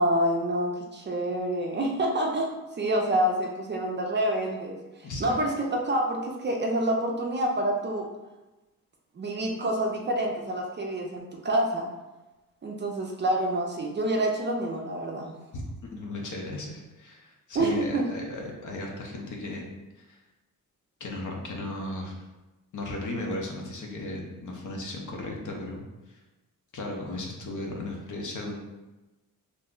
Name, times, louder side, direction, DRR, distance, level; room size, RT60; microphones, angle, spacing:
voice 1, 0.0-2.5 2.8-8.1 9.2-11.9 12.6-15.3 17.5-18.1, right 1 dB, 30° right, 0 dB, 0.4 m, -27 dB
voice 2, 15.5-19.7 20.0-20.2 21.0-22.2 22.7-25.8 26.7-28.6, left 2 dB, 60° left, 0 dB, 0.6 m, -36 dB
2.5 x 2.1 x 3.6 m, 1.1 s
cardioid pair, 110°, 35 cm